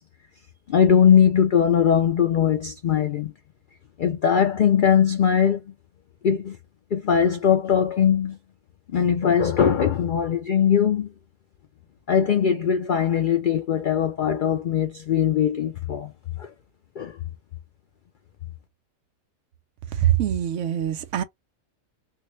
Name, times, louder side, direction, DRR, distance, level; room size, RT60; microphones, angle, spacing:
voice 1, 0.7-3.3 4.0-5.6 6.2-6.6 6.9-8.4 8.9-11.1 12.1-16.1 16.4-16.5 17.0-17.1, left 8 dB, 80° left, 0.4 m, -20 dB
voice 2, 19.9-21.2, right 11 dB, 70° right, 0.8 m, -23 dB
3.1 x 2.7 x 3.1 m
omnidirectional pair, 1.5 m